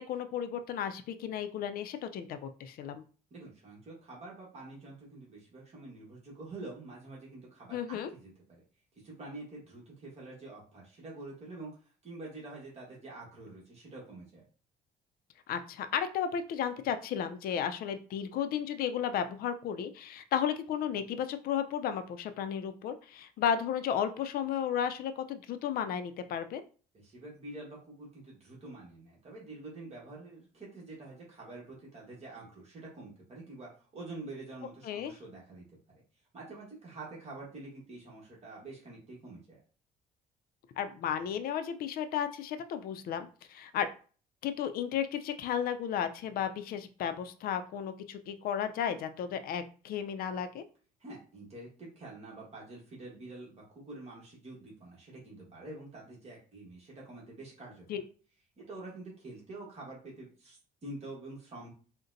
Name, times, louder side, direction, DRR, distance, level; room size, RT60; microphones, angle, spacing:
voice 1, 0.0-3.0 7.7-8.1 15.5-26.6 34.8-35.1 40.8-43.9 44.4-50.6 57.9-58.0, left 8 dB, 60° left, 10 dB, 0.4 m, -34 dB
voice 2, 3.3-8.6 8.9-14.4 26.9-35.7 36.3-39.6 51.0-57.9 58.6-61.7, right 2 dB, 40° right, -4 dB, 1.2 m, -47 dB
3.9 x 2.1 x 2.5 m, 0.38 s
cardioid pair, 110°, 17 cm